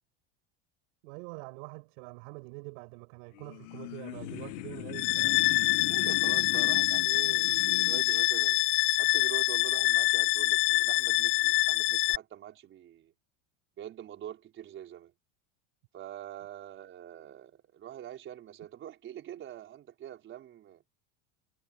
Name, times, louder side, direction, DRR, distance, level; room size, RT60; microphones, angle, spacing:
voice 1, 1.0-5.4, right 30 dB, 65° right, 7.8 m, -45 dB
sound 1, 3.3-8.2, left 21 dB, 70° left, 1.0 m, -40 dB
sound 2, 4.9-12.2, left 24 dB, 50° left, 0.6 m, -26 dB
voice 2, 5.9-13.1 13.8-15.1 15.9-20.8, right 11 dB, 30° right, 4.7 m, -44 dB
cardioid pair, 165°, 38 cm